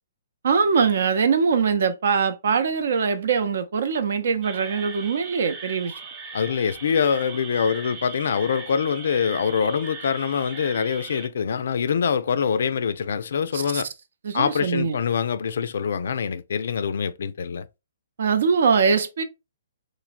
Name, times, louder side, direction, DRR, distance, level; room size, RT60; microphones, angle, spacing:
voice 1, 0.4-6.0 13.5-13.8 14.2-15.0 18.2-19.2, right 5 dB, 70° right, 0.5 m, -22 dB
sound 1, 4.4-11.3, right 4 dB, 30° right, 0.7 m, -39 dB
voice 2, 6.3-13.9 14.3-17.7, left 6 dB, 70° left, 0.3 m, -24 dB
3.2 x 2.0 x 2.5 m
hypercardioid pair, 145°, 0 cm